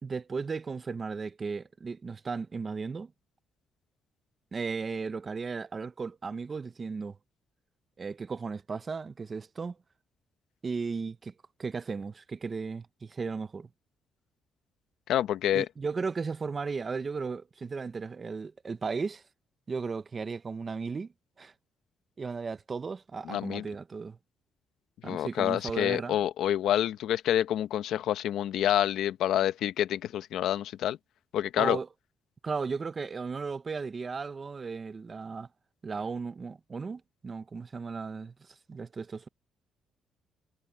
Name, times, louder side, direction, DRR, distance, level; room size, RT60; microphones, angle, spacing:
voice 1, 0.0-3.1 4.5-7.2 8.0-9.8 10.6-11.3 11.6-13.7 15.5-19.2 19.7-21.1 21.4-21.5 22.2-24.2 25.0-26.2 31.6-31.9 32.4-35.5 35.8-38.3 38.7-39.3, right 4 dB, 35° right, 1.0 m, -35 dB
voice 2, 15.1-15.7 23.2-23.6 25.0-31.0 31.3-31.8, left 11 dB, 80° left, 1.0 m, -27 dB
cardioid pair, 90°, 0 cm